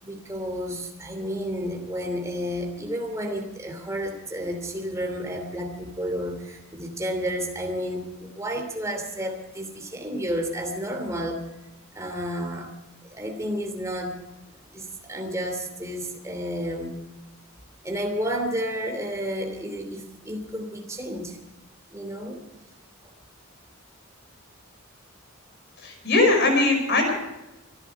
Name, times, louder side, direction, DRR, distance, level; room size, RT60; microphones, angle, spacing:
voice 1, 0.0-11.4 11.9-12.7 13.1-14.2 14.7-16.9 17.8-21.4 21.9-22.4, equal, 15° right, 3 dB, 3.0 m, -31 dB
voice 2, 25.8-27.1, left 2 dB, 55° left, 3 dB, 5.4 m, -20 dB
25.5 x 11.0 x 4.8 m, 0.98 s
head